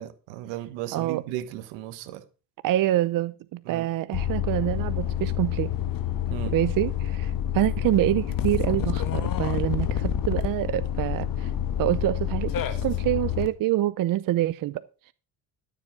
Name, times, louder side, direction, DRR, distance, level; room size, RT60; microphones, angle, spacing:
voice 1, 0.0-2.2 3.7-3.9 6.3-6.5, right 13 dB, 90° right, 1.4 m, -35 dB
voice 2, 0.9-1.2 2.6-5.7 6.5-11.5 11.8-14.8, right 14 dB, 55° right, 0.7 m, -26 dB
sound 1, 4.1-13.5, left 10 dB, 55° left, 1.7 m, -28 dB
13.0 x 7.6 x 5.1 m
supercardioid pair, 90°, 40 cm